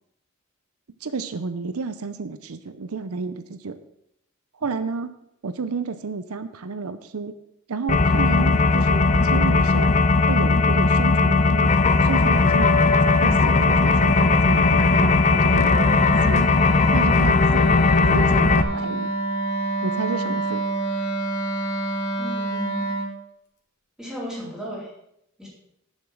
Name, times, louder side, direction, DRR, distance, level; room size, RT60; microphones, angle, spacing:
voice 1, 1.0-3.8 4.6-5.1 5.4-7.4 7.7-9.9 10.3-11.7 12.0-16.5 16.9-17.7 18.0-19.1 19.8-20.6, right 4 dB, 80° right, 11 dB, 0.6 m, -31 dB
sound 1, 7.9-18.6, left 3 dB, 35° left, 0.6 m, -18 dB
Wind instrument woodwind instrument, 10.2-23.2, right 2 dB, 55° left, 2.1 m, -30 dB
voice 2, 22.2-22.9 24.0-24.9 25.4-25.5, equal, 5° right, -5 dB, 3.9 m, -35 dB
10.0 x 7.2 x 6.3 m, 0.78 s
head